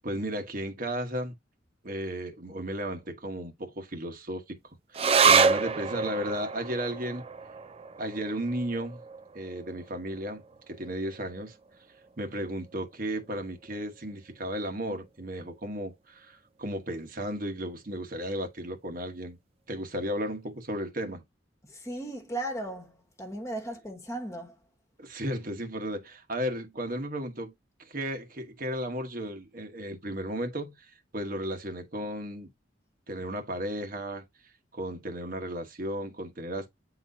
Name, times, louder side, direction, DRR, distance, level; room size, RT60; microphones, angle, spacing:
voice 1, 0.0-1.3 1.8-7.2 8.0-9.0 9.3-11.5 12.2-19.4 19.7-21.2 25.0-27.5 27.8-32.5 33.1-34.3 34.7-36.7, right 1 dB, 45° right, 1.2 m, -34 dB
sound 1, 4.9-11.7 12.0-12.1 12.5-13.1 13.7-13.8, right 5 dB, 30° right, 0.5 m, -28 dB
voice 2, 21.6-24.5, right 1 dB, 15° left, 1.3 m, -36 dB
8.8 x 4.0 x 2.7 m
head